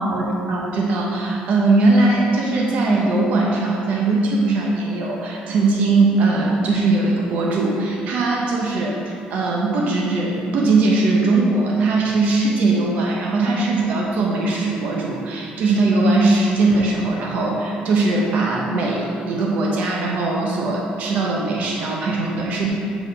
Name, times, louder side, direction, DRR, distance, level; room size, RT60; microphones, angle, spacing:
voice 1, 0.0-22.7, right 3 dB, 55° right, -2 dB, 1.1 m, -20 dB
8.2 x 4.8 x 5.4 m, 2.8 s
cardioid pair, 165°, 3 cm